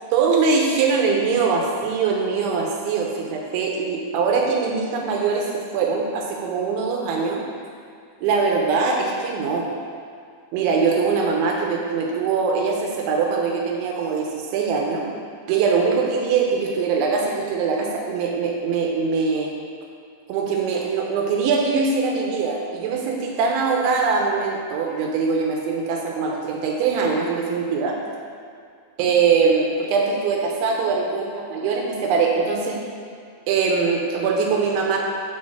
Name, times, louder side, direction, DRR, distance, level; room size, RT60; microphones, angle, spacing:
voice 1, 0.1-7.4 8.2-9.7 10.5-15.1 15.5-19.5 20.3-28.0 29.0-32.8 33.5-35.0, right 5 dB, 85° right, 0 dB, 3.2 m, -22 dB
6.9 x 4.3 x 6.2 m, 2.3 s
omnidirectional pair, 5.3 m